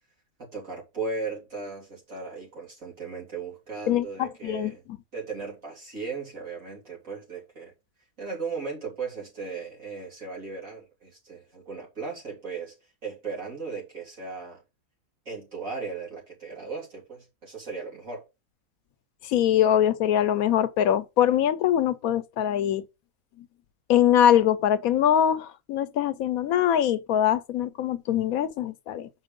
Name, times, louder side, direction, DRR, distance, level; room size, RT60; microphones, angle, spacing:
voice 1, 0.4-4.8 5.1-7.7 8.2-12.7 13.0-14.6 15.3-18.3, right 4 dB, 70° right, 3.9 m, -36 dB
voice 2, 3.9-4.7 19.2-22.8 23.9-29.1, left 10 dB, 85° left, 1.1 m, -23 dB
6.4 x 4.8 x 5.2 m
omnidirectional pair, 1.5 m